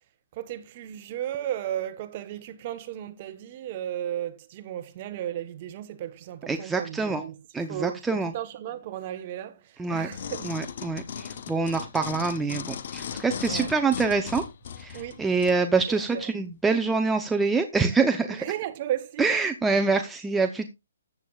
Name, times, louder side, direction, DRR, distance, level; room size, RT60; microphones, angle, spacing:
voice 1, 0.3-7.4 7.7-10.5 13.5-13.7 14.9-15.2 16.1-16.2 18.3-19.3, right 11 dB, 30° right, 1.1 m, -34 dB
voice 2, 6.5-7.2 7.5-8.3 9.8-10.1 10.4-14.4 14.8-18.4 19.2-20.7, right 4 dB, 5° right, 0.7 m, -25 dB
sound 1, 10.1-15.6 16.2-16.3, left 8 dB, 50° left, 1.1 m, -37 dB
14.0 x 8.8 x 2.4 m
hypercardioid pair, 165°, 0 cm